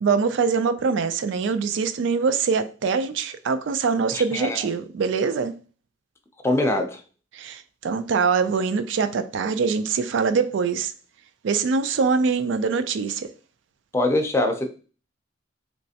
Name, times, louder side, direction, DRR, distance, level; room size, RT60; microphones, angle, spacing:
voice 1, 0.0-5.6 7.3-10.9 11.4-13.3, right 5 dB, 70° right, 0.4 m, -23 dB
voice 2, 4.1-4.6 6.4-7.0 13.9-14.7, left 1 dB, 15° left, 0.5 m, -23 dB
3.2 x 3.1 x 2.7 m
head